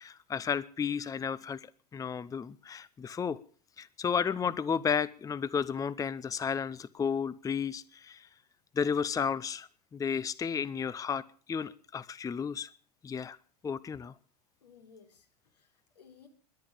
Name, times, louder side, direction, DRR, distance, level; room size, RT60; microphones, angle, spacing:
voice 1, 0.0-1.7 1.9-3.4 3.8-8.3 8.7-12.7 13.0-13.4 13.6-14.1, left 6 dB, 15° left, 19 dB, 0.6 m, -33 dB
voice 2, 14.6-16.3, left 6 dB, 85° left, 5 dB, 3.7 m, -58 dB
22.0 x 8.9 x 6.7 m, 0.43 s
hypercardioid pair, 90°, 20 cm